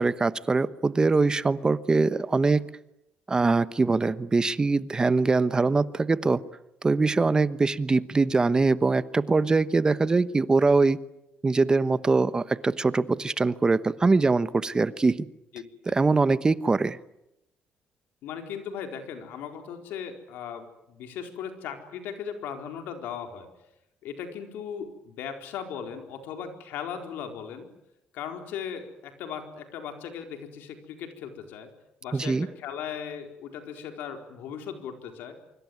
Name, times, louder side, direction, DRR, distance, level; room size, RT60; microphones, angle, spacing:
voice 1, 0.0-2.6 3.3-6.4 6.8-11.0 11.4-15.3 15.9-17.0 32.1-32.5, right 3 dB, 25° right, 15 dB, 1.0 m, -23 dB
voice 2, 15.5-15.9 18.2-23.5 24.0-27.7 28.1-31.7 32.0-35.3, left 7 dB, 90° left, 5 dB, 4.4 m, -38 dB
25.5 x 24.5 x 9.6 m, 0.87 s
cardioid pair, 95°, 3 cm